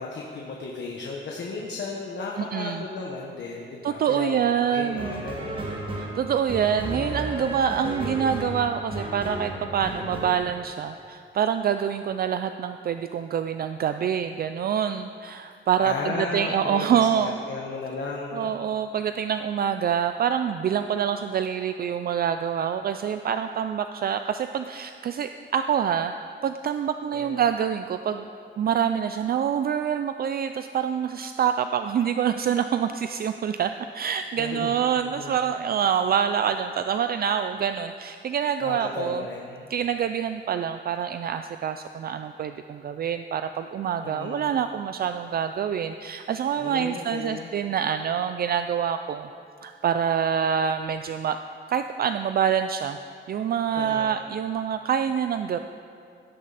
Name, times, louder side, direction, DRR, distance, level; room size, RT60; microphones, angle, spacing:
voice 1, 0.0-5.7 15.8-16.9 17.1-18.6 27.1-27.4 34.4-35.5 38.6-39.7 44.0-44.5 46.6-47.5 53.7-54.1, left 3 dB, 65° left, -2 dB, 1.3 m, -35 dB
voice 2, 2.4-2.8 3.8-5.2 6.0-17.4 18.3-28.3 28.6-39.2 39.7-49.3 49.6-51.4 51.7-53.0 53.3-55.6, right 8 dB, 50° right, 8 dB, 0.4 m, -26 dB
sound 1, 4.9-10.3, right 1 dB, 25° right, 1.7 m, -33 dB
16.5 x 12.0 x 4.1 m, 2.4 s
wide cardioid pair, 180°, 19 cm